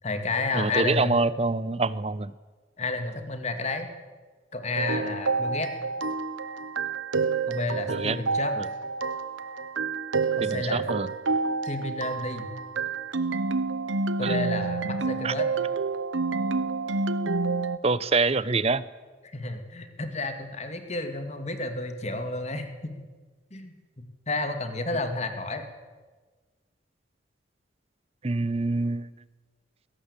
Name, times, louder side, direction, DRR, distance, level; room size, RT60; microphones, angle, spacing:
voice 1, 0.0-1.2 2.8-3.9 4.5-5.7 7.5-8.5 10.4-10.8 11.6-12.5 14.2-15.5 19.2-22.9 23.5-25.7, left 2 dB, 35° left, 7 dB, 2.3 m, -31 dB
voice 2, 0.5-2.3 7.9-8.2 8.6-8.7 10.4-11.1 14.2-14.4 15.2-15.3 17.8-18.8 28.2-29.1, right 3 dB, 30° right, 18 dB, 0.7 m, -25 dB
sound 1, 4.8-17.8, right 4 dB, 85° right, 1.0 m, -28 dB
22.0 x 17.5 x 8.3 m, 1.4 s
head